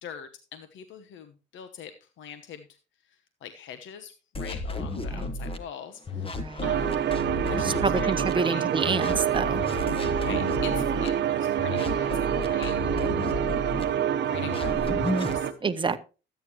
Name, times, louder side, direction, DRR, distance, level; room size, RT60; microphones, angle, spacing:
voice 1, 0.0-2.8 3.0-7.1 7.4-8.7 10.0-12.8 14.2-15.7, left 8 dB, 75° left, 9 dB, 1.1 m, -44 dB
sound 1, 4.3-5.6 6.1-8.3 8.8-11.1 11.6-13.8 14.3-15.4, left 2 dB, 25° left, 1.7 m, -32 dB
sound 2, 6.6-15.5, right 9 dB, 60° right, 0.9 m, -27 dB
voice 2, 7.6-9.6 15.6-16.1, right 4 dB, 25° right, 9 dB, 0.9 m, -27 dB
13.0 x 9.3 x 3.1 m, 0.33 s
cardioid pair, 90°, 20 cm